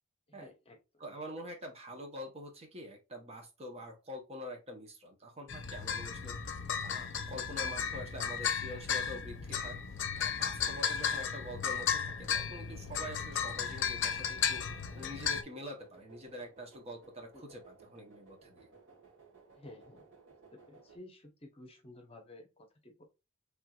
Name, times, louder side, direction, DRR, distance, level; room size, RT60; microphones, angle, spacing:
voice 1, 0.3-1.0 17.3-17.4 19.6-20.1 20.5-23.0, left 1 dB, 30° left, 3 dB, 1.0 m, -53 dB
voice 2, 1.0-6.5 6.8-9.8 10.2-18.7, equal, 30° right, 3 dB, 1.0 m, -46 dB
sound 1, 5.5-15.4, left 7 dB, 60° left, 0.6 m, -35 dB
sound 2, 10.7-21.0, right 4 dB, 65° right, 1.7 m, -59 dB
4.6 x 3.5 x 2.4 m, 0.26 s
head